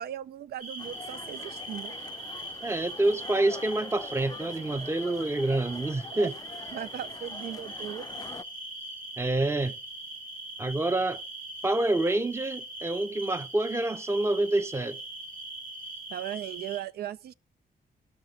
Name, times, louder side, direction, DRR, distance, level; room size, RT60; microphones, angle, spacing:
voice 1, 0.0-1.9 6.1-6.3 6.7-8.1 16.1-17.3, right 11 dB, 85° right, 0.4 m, -37 dB
sound 1, 0.6-16.8, right 1 dB, 60° right, 3.9 m, -41 dB
sound 2, 0.8-8.4, left 4 dB, 25° left, 0.4 m, -45 dB
voice 2, 2.6-6.3 9.2-9.7 10.6-11.2 11.6-15.0, right 2 dB, 15° right, 0.7 m, -27 dB
16.5 x 6.0 x 3.9 m
cardioid pair, 105°, 16 cm